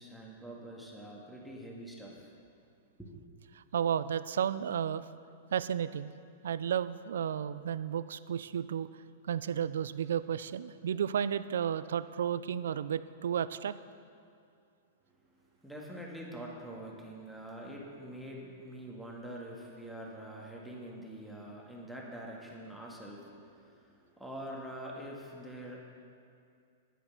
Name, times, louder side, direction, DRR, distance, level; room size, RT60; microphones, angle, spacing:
voice 1, 0.0-2.3 3.0-3.1 15.6-25.8, right 1 dB, ahead, -3 dB, 1.8 m, -45 dB
voice 2, 3.7-5.0 5.5-6.1 6.4-8.9 9.3-13.7, right 8 dB, 75° right, 15 dB, 0.4 m, -32 dB
10.0 x 9.1 x 5.9 m, 2.4 s
hypercardioid pair, 110°, 0 cm